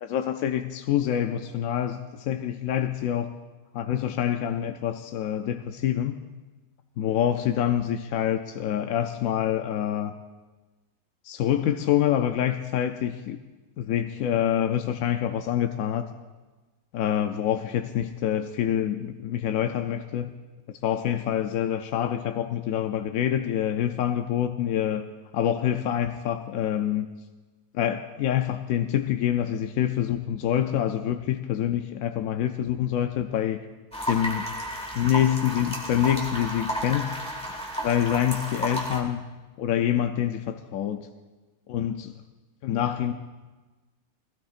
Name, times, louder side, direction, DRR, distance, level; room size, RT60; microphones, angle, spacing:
voice 1, 0.0-3.3 3.7-6.2 7.0-10.1 11.2-13.4 13.8-16.1 16.9-20.3 20.7-25.1 25.3-27.1 27.7-33.6 34.1-34.5 34.9-37.1 37.5-39.3 39.6-41.1 41.7-42.1 42.6-43.1, left 10 dB, 80° left, 7 dB, 1.0 m, -26 dB
sound 1, 33.9-39.0, equal, 5° left, 1.8 m, -32 dB
20.0 x 16.0 x 2.5 m, 1.2 s
omnidirectional pair, 1.4 m